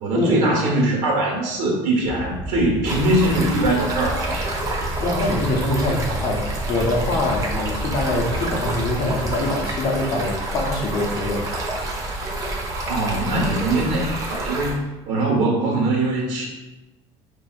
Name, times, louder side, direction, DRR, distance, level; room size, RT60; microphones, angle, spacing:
voice 1, 0.0-4.6 12.9-14.8 15.0-16.5, right 2 dB, 75° right, -2 dB, 1.4 m, -22 dB
sound 1, 2.0-9.4, right 1 dB, ahead, 1.4 m, -33 dB
Stream, 2.8-14.7, right 2 dB, 30° right, 0.7 m, -28 dB
voice 2, 5.0-11.5, left 2 dB, 40° left, 0 dB, 0.7 m, -24 dB
5.4 x 2.7 x 2.4 m, 1.1 s
cardioid pair, 160°, 12 cm